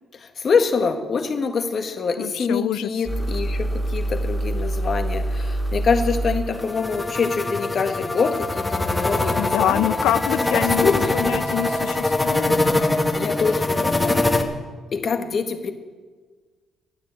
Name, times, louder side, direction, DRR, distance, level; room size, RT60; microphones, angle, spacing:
voice 1, 0.1-9.9 10.4-11.2 13.1-14.3 14.9-15.7, left 5 dB, 50° left, 6 dB, 1.6 m, -25 dB
voice 2, 2.2-2.9 9.4-12.6, left 12 dB, 90° left, 16 dB, 0.5 m, -25 dB
sound 1, 3.1-13.1, right 1 dB, ahead, 2.1 m, -29 dB
sound 2, 6.5-14.4, left 2 dB, 15° left, 1.4 m, -23 dB
12.5 x 9.7 x 8.3 m, 1.4 s
cardioid pair, 90°, 0 cm